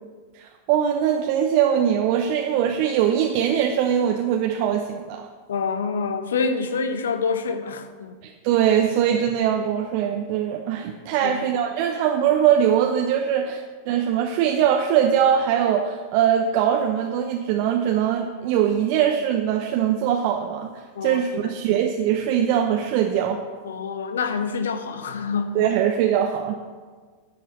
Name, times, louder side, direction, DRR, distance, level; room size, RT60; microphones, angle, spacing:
voice 1, 0.3-5.3 8.2-20.7 21.0-23.4 25.5-26.5, right 9 dB, 45° right, 3 dB, 0.8 m, -22 dB
voice 2, 5.5-8.1 11.2-11.4 20.9-21.8 23.6-25.6, left 5 dB, 65° left, 9 dB, 1.0 m, -27 dB
10.5 x 6.0 x 7.4 m, 1.5 s
figure-of-eight pair, 90°, 0 cm